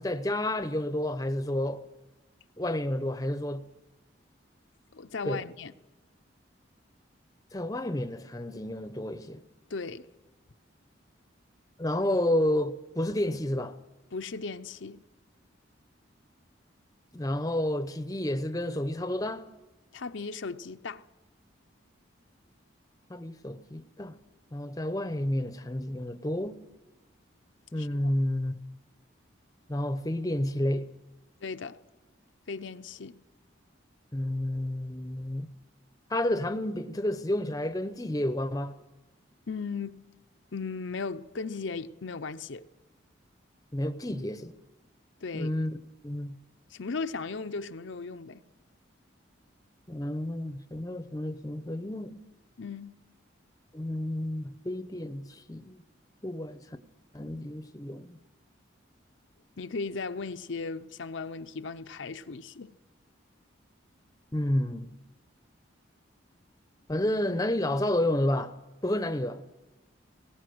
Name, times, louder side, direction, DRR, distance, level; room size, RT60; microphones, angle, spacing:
voice 1, 0.0-1.8 2.6-3.6 5.2-5.4 7.5-9.4 11.8-13.8 17.1-19.5 23.1-24.2 24.5-26.6 27.7-28.6 29.7-30.9 34.1-35.5 36.1-38.8 43.7-44.5 45.3-45.7 46.0-46.3 49.9-52.2 53.7-55.8 56.2-56.6 57.1-58.2 64.3-64.9 66.9-68.6 68.8-69.4, left 1 dB, 20° left, 0.7 m, -30 dB
voice 2, 4.9-5.7 9.7-10.1 14.1-15.0 19.9-21.1 27.8-28.1 31.4-31.8 32.5-33.2 39.5-40.0 40.5-42.7 45.2-45.5 46.7-48.4 52.6-52.9 59.6-62.7, left 4 dB, 70° left, 0.7 m, -37 dB
19.0 x 17.5 x 7.8 m
head